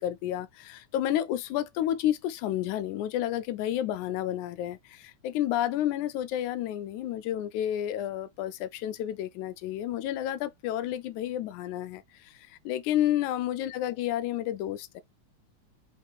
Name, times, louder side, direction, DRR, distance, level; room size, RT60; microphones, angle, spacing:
voice 1, 0.0-15.0, left 12 dB, 90° left, 2.1 m, -30 dB
6.4 x 3.1 x 2.2 m
omnidirectional pair, 3.3 m